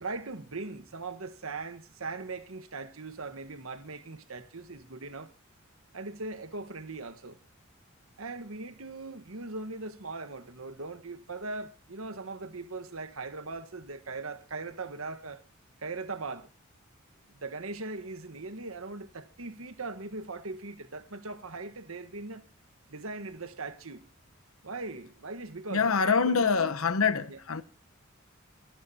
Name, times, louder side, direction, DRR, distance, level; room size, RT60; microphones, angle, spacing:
voice 1, 0.0-5.3 5.9-7.4 8.2-15.4 15.8-16.5 17.3-22.4 22.9-24.0 24.6-26.7 27.3-27.4, right 3 dB, 80° right, 1.4 m, -40 dB
voice 2, 25.7-27.6, left 5 dB, 90° left, 1.0 m, -25 dB
26.5 x 12.0 x 2.8 m
head